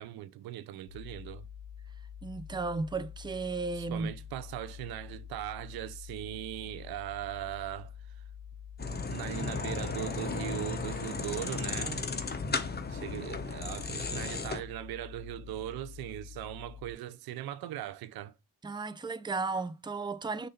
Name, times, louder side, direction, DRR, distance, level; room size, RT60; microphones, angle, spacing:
voice 1, 0.0-1.5 3.8-7.9 9.1-12.1 12.9-18.3, right 13 dB, 80° right, 0.7 m, -39 dB
sound 1, 0.9-16.9, left 8 dB, 50° left, 1.8 m, -47 dB
voice 2, 2.2-4.1 18.6-20.5, right 3 dB, 10° right, 0.6 m, -34 dB
sound 2, 8.8-14.6, left 4 dB, 25° left, 1.0 m, -35 dB
6.6 x 2.7 x 5.7 m
cardioid pair, 75°, 36 cm